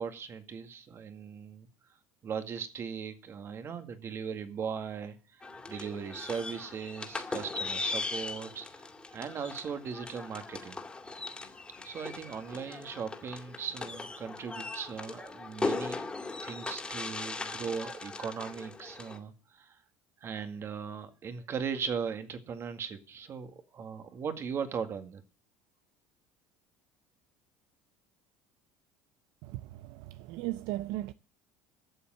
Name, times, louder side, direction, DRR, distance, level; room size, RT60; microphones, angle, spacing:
voice 1, 0.0-1.7 2.2-5.4 5.7-8.9 9.1-10.8 11.8-16.0 16.4-19.8 20.2-25.2, right 6 dB, 40° right, 2.0 m, -38 dB
sound 1, 5.4-19.2, left 3 dB, 15° left, 2.5 m, -39 dB
voice 2, 29.4-31.1, right 16 dB, 70° right, 0.5 m, -37 dB
12.5 x 7.2 x 7.8 m
supercardioid pair, 95°, 6 cm